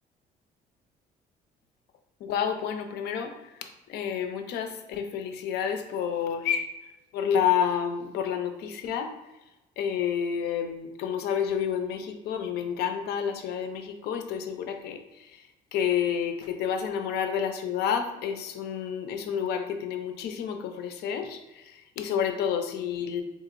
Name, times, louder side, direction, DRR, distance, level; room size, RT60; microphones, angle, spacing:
voice 1, 2.2-3.3 3.6-6.7 7.1-9.1 9.8-15.4 15.7-23.2, left 8 dB, 75° left, 7 dB, 0.5 m, -29 dB
3.8 x 2.9 x 2.5 m, 1.0 s
cardioid pair, 110°, 17 cm